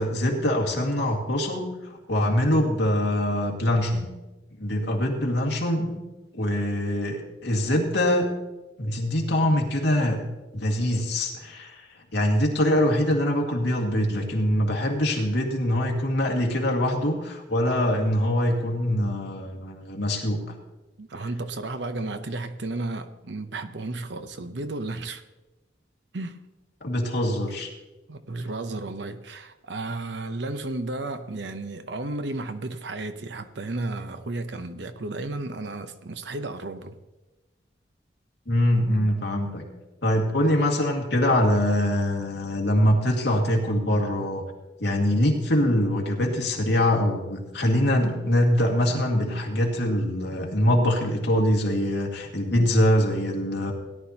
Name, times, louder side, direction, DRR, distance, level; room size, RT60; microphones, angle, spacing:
voice 1, 0.0-4.1 4.6-6.0 6.3-8.3 8.8-10.2 10.5-20.5 26.8-27.7 38.5-39.7 40.0-44.4 44.8-53.7, left 1 dB, 70° left, 2.0 m, -23 dB
voice 2, 21.0-25.2 26.1-26.4 28.1-37.0, right 2 dB, 75° right, 0.8 m, -33 dB
17.5 x 11.0 x 2.8 m
head